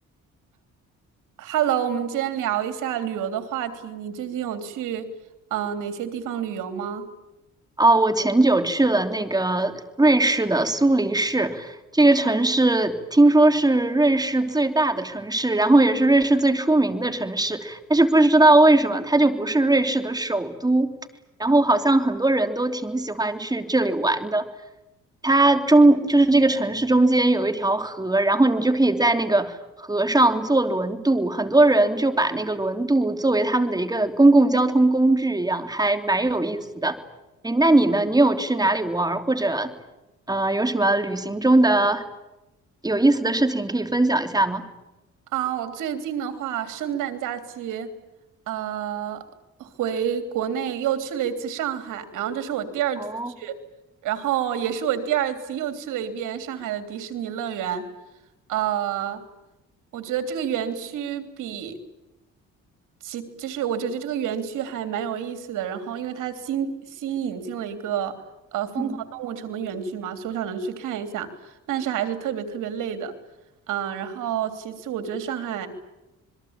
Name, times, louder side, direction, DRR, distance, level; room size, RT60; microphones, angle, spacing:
voice 1, 1.4-5.1 5.5-7.0 45.3-47.9 48.5-49.2 49.6-53.6 54.0-57.8 58.5-59.2 59.9-61.8 63.0-68.2 68.5-71.3 71.7-73.1 73.7-75.7, right 9 dB, 85° right, 8 dB, 3.4 m, -28 dB
voice 2, 7.8-20.9 21.4-24.4 25.2-37.0 37.4-39.7 40.3-42.0 42.8-44.7 53.0-53.3 68.8-69.0, right 2 dB, 15° right, 8 dB, 3.1 m, -20 dB
27.0 x 22.0 x 8.9 m, 0.96 s
cardioid pair, 90°, 30 cm